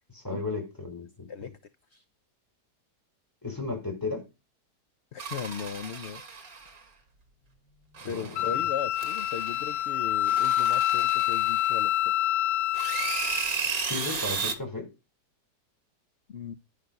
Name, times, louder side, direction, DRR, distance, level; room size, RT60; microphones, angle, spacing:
voice 1, 0.1-1.3 3.4-4.3 8.0-8.2 13.8-14.9, left 3 dB, 10° left, 4.8 m, -34 dB
voice 2, 5.1-6.2 8.0-12.1 16.3-16.6, left 7 dB, 50° left, 1.0 m, -37 dB
sound 1, 5.2-6.8 7.9-8.6 9.0-9.8 10.3-12.0 12.7-14.5, right 5 dB, 55° right, 2.8 m, -34 dB
Wind instrument woodwind instrument, 8.4-13.5, left 13 dB, 85° left, 1.6 m, -27 dB
11.0 x 11.0 x 5.4 m
omnidirectional pair, 1.8 m